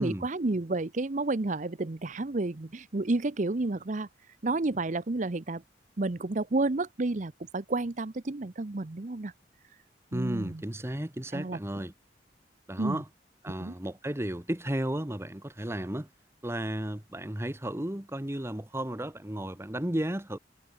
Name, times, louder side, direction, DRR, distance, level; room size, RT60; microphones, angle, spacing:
voice 1, 0.0-4.1 4.4-5.6 6.0-9.3 10.1-10.6 11.3-11.6 12.8-13.0 13.6-13.7, right 2 dB, 45° right, 0.8 m, -30 dB
voice 2, 10.1-11.9 12.7-13.0 13.4-16.1 16.4-20.4, right 1 dB, 15° right, 1.3 m, -33 dB
head